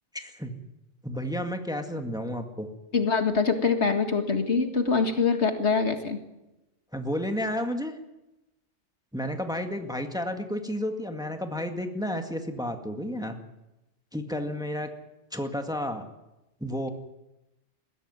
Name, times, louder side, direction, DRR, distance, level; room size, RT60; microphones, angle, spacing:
voice 1, 0.1-0.5 1.0-2.7 6.9-7.9 9.1-13.4 14.1-14.9 15.3-16.1 16.6-16.9, equal, 5° right, 5 dB, 2.0 m, -31 dB
voice 2, 2.9-6.2, left 5 dB, 65° left, 6 dB, 2.2 m, -24 dB
21.0 x 16.0 x 9.6 m, 0.95 s
omnidirectional pair, 1.2 m